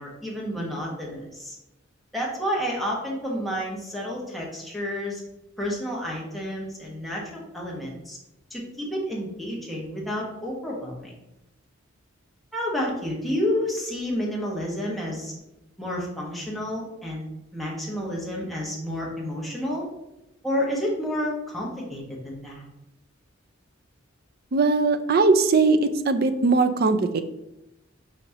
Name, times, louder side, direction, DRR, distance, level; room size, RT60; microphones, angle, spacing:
voice 1, 0.0-1.5 2.1-5.2 5.6-8.2 8.5-11.1 12.5-15.3 15.8-17.2 17.5-19.8 20.4-22.7, equal, ahead, -4 dB, 1.5 m, -30 dB
voice 2, 24.5-25.8 26.1-27.2, right 4 dB, 50° right, 10 dB, 0.5 m, -20 dB
6.1 x 5.1 x 3.0 m, 0.92 s
head